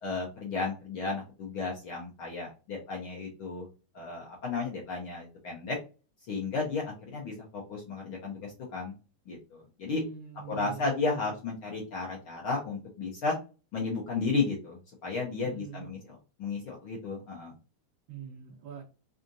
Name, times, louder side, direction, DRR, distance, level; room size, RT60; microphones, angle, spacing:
voice 1, 0.0-3.7 3.9-5.8 6.3-8.9 9.3-10.0 10.5-13.3 13.7-17.5, left 4 dB, 70° left, -2 dB, 1.3 m, -33 dB
voice 2, 9.9-11.3 15.4-15.9 18.1-18.8, right 8 dB, 70° right, -3 dB, 1.1 m, -44 dB
4.9 x 2.5 x 2.7 m, 0.33 s
omnidirectional pair, 3.5 m